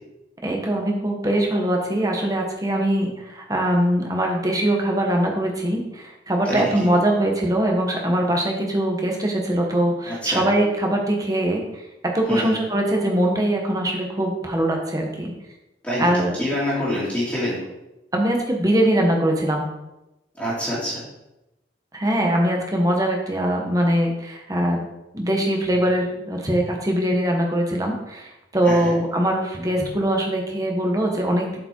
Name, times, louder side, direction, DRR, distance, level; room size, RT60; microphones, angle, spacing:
voice 1, 0.4-11.6 12.1-15.3 16.0-16.3 18.1-19.6 21.9-24.8 25.1-31.6, right 1 dB, 20° right, 1 dB, 1.3 m, -22 dB
voice 2, 6.4-6.9 10.1-10.4 12.3-12.5 15.8-16.1 16.4-17.6 20.4-21.0 28.6-28.9, equal, 10° left, -11 dB, 2.5 m, -26 dB
7.7 x 5.0 x 4.5 m, 0.93 s
head